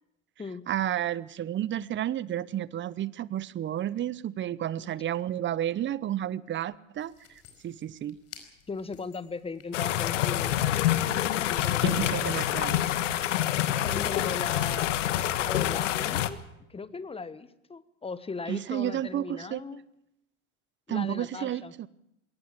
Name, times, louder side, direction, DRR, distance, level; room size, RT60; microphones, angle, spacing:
voice 1, 0.7-7.1 7.6-8.2 11.8-12.8 18.5-19.6 20.9-21.9, right 11 dB, 30° right, 20 dB, 0.9 m, -31 dB
sound 1, 6.9-12.0, left 8 dB, 40° left, 4.8 m, -52 dB
voice 2, 8.7-12.2 13.8-14.9 15.4-16.4 16.7-19.8 20.9-21.7, left 4 dB, 15° left, 15 dB, 1.3 m, -38 dB
sound 2, 9.7-16.3, left 12 dB, 80° left, 1.4 m, -27 dB
21.5 x 18.0 x 7.7 m, 0.81 s
hypercardioid pair, 95°, 37 cm